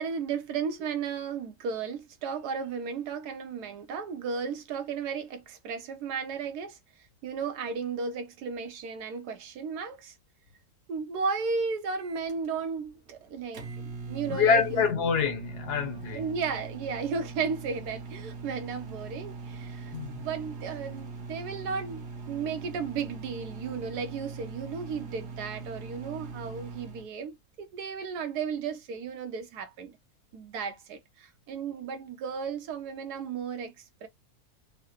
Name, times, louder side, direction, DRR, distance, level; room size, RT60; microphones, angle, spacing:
voice 1, 0.0-6.8 7.2-10.1 10.9-14.9 16.1-30.0 30.3-34.1, right 5 dB, 80° right, 1.3 m, -34 dB
Microwave oven, 12.0-27.1, right 4 dB, 50° right, 1.0 m, -41 dB
voice 2, 14.3-16.2 19.9-20.2, left 6 dB, 85° left, 1.4 m, -26 dB
3.8 x 2.1 x 2.9 m
omnidirectional pair, 1.7 m